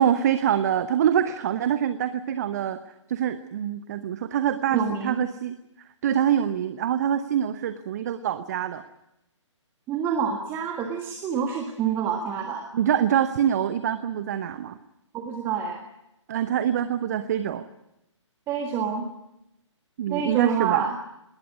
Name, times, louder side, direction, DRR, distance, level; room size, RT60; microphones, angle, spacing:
voice 1, 0.0-2.8 3.1-5.5 6.0-8.8 12.7-14.8 16.3-17.6 20.0-20.9, right 9 dB, 35° right, 11 dB, 1.0 m, -25 dB
voice 2, 4.7-5.2 9.9-12.6 15.1-15.8 18.5-19.1 20.1-21.0, right 7 dB, 15° right, 3 dB, 1.6 m, -27 dB
20.0 x 19.5 x 9.6 m, 0.88 s
figure-of-eight pair, 135°, 16 cm